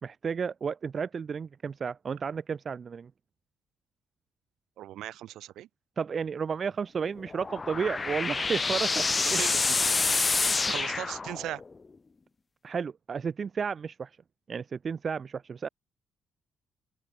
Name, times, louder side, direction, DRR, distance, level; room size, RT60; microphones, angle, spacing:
voice 1, 0.0-3.1 6.0-9.4 10.5-10.7 12.6-14.1 14.5-15.7, right 6 dB, 45° right, 1.5 m, -32 dB
voice 2, 4.8-5.7 9.2-9.6 10.4-11.6, right 13 dB, 80° right, 3.8 m, -38 dB
sound 1, 7.2-11.7, left 4 dB, 30° left, 2.4 m, -28 dB
open air
cardioid pair, 90°, 0 cm